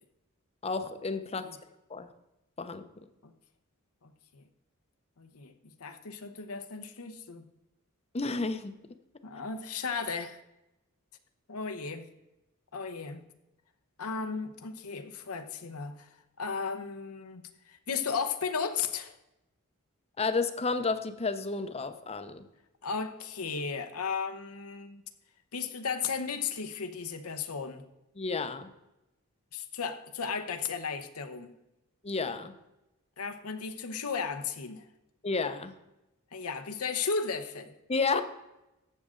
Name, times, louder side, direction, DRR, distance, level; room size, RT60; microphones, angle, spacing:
voice 1, 0.6-1.5 1.9-2.1 2.6-3.1 8.1-8.7 20.2-22.4 28.2-28.7 32.0-32.5 35.2-35.7 37.9-38.2, left 4 dB, 30° left, 10 dB, 0.7 m, -31 dB
voice 2, 4.0-4.4 5.2-5.5 5.8-7.4 9.2-10.4 11.5-12.0 12.7-13.2 14.0-16.1 16.4-19.2 22.8-25.0 25.5-27.8 29.5-31.5 33.2-34.8 36.3-37.7, left 5 dB, 85° left, 8 dB, 0.9 m, -35 dB
13.5 x 7.6 x 3.8 m, 0.93 s
head